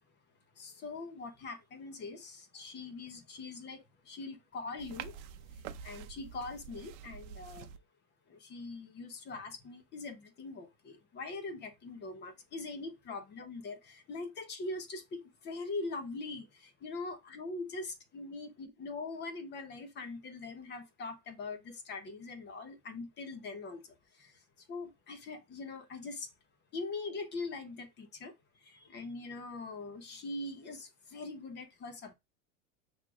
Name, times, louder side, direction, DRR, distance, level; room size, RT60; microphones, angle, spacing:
voice 1, 0.6-5.1 5.8-7.7 8.3-23.9 24.1-24.4 24.7-26.3 26.7-28.3 28.6-32.1, left 3 dB, 25° left, 0.9 m, -42 dB
sound 1, 4.8-7.8, right 8 dB, 60° right, 0.7 m, -47 dB
5.8 x 3.1 x 2.4 m
supercardioid pair, 135°, 41 cm